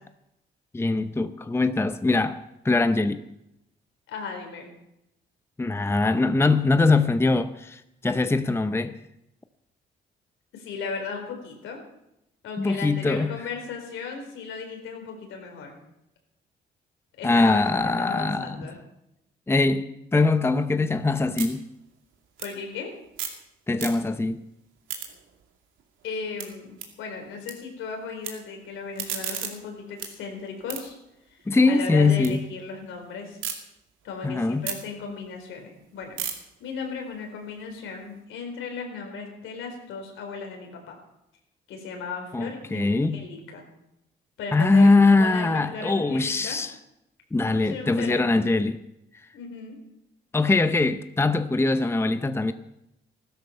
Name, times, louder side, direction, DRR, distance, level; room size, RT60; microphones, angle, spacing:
voice 1, 0.7-2.4 2.6-3.2 5.6-9.0 12.6-13.4 17.2-18.7 19.5-21.7 23.7-24.4 31.5-32.4 34.2-34.7 42.3-43.2 44.5-46.7 47.3-48.8 50.3-52.5, left 3 dB, 10° left, 0.7 m, -22 dB
voice 2, 4.1-4.7 10.5-11.8 12.4-15.8 17.2-18.8 22.4-22.9 26.0-30.9 31.3-31.4 31.6-33.4 34.0-36.2 36.6-41.0 41.7-43.6 44.4-44.9 45.2-46.6 47.4-48.6 49.3-49.8, left 5 dB, 85° left, 4.1 m, -36 dB
sound 1, 20.5-23.5 23.7-24.3 24.7-27.5 27.8-28.3 28.7-32.3 32.7-33.6 34.0-38.2, right 8 dB, 85° right, 2.4 m, -38 dB
15.5 x 13.0 x 5.7 m
cardioid pair, 90°, 20 cm